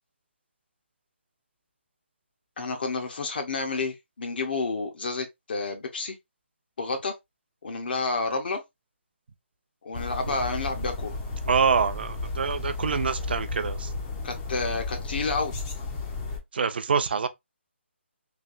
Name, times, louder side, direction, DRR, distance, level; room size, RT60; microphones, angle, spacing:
voice 1, 2.6-6.2 6.8-7.1 7.6-8.6 9.8-11.2 14.2-15.5, left 3 dB, 50° left, 0.8 m, -30 dB
sound 1, 9.9-16.4, left 3 dB, 15° left, 0.5 m, -33 dB
voice 2, 11.5-13.9 16.5-17.3, right 6 dB, 55° right, 0.5 m, -25 dB
3.3 x 2.7 x 2.5 m
hypercardioid pair, 170°, 7 cm